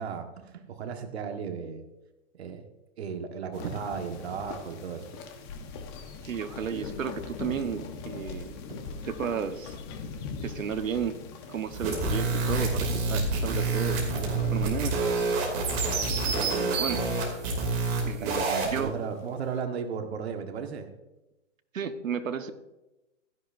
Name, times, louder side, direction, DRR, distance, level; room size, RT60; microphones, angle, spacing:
voice 1, 0.0-1.8 2.4-2.6 3.0-5.2 8.7-8.8 16.3-16.8 18.1-20.9, right 6 dB, 55° right, 5 dB, 1.5 m, -35 dB
sound 1, 3.5-19.0, left 4 dB, 20° left, 0.9 m, -40 dB
voice 2, 6.2-8.5 9.0-9.7 10.4-11.2 11.5-15.0 16.2-17.0 18.0-18.9 21.7-22.5, right 7 dB, 90° right, 8 dB, 1.3 m, -33 dB
sound 2, 11.7-18.8, right 3 dB, 20° right, 2.7 m, -28 dB
16.0 x 13.0 x 2.6 m, 0.98 s
hypercardioid pair, 165°, 38 cm